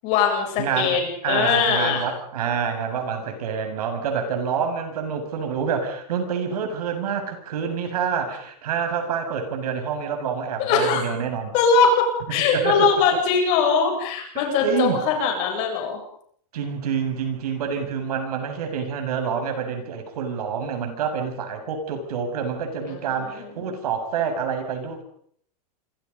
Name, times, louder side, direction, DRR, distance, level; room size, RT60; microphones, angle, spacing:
voice 1, 0.0-2.0 10.6-11.0 11.5-16.0 22.9-23.5, left 5 dB, 35° left, 2 dB, 7.6 m, -21 dB
voice 2, 0.6-11.5 12.5-12.9 14.4-15.0 16.5-25.0, right 6 dB, 70° right, 6 dB, 7.0 m, -27 dB
27.5 x 25.5 x 5.4 m, 0.64 s
supercardioid pair, 175°, 20 cm